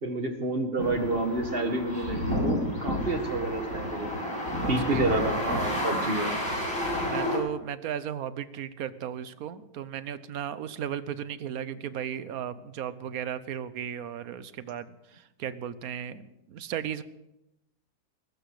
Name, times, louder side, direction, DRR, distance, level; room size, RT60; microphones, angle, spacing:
voice 1, 0.0-4.1 4.7-6.4, right 2 dB, 30° right, 5 dB, 1.9 m, -29 dB
sound 1, 0.8-7.4, left 1 dB, 50° left, 6.7 m, -30 dB
voice 2, 4.6-5.1 7.0-17.0, right 9 dB, 60° right, 14 dB, 1.2 m, -35 dB
21.5 x 13.0 x 4.9 m, 0.91 s
omnidirectional pair, 1.9 m